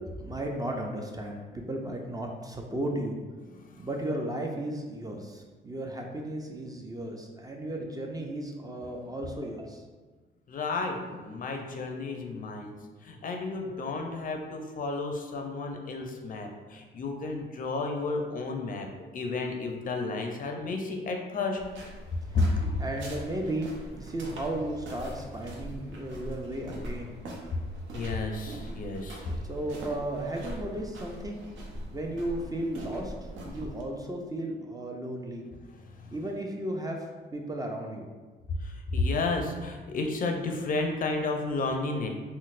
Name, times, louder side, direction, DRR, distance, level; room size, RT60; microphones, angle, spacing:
voice 1, 0.2-3.2 3.8-9.8 22.3-22.5 22.8-27.2 29.5-31.5 31.9-33.1 33.4-35.4 36.1-37.1 37.3-38.2, right 1 dB, 20° right, 1 dB, 0.4 m, -35 dB
voice 2, 10.5-18.9 19.1-21.6 22.3-22.6 27.9-29.3 35.8-36.1 38.6-42.1, left 3 dB, 45° left, 3 dB, 0.4 m, -32 dB
sound 1, 21.6-33.8, equal, 75° right, 0.6 m, -42 dB
3.9 x 2.1 x 2.4 m, 1.3 s
cardioid pair, 90°, 20 cm